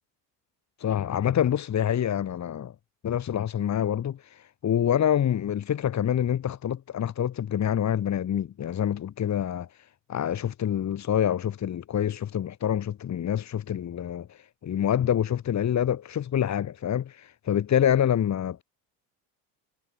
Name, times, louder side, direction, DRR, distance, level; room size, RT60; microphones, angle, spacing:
voice 1, 0.8-2.7 3.0-9.7 10.1-18.6, left 10 dB, 40° left, 4.4 m, -26 dB
cardioid pair, 125°, 44 cm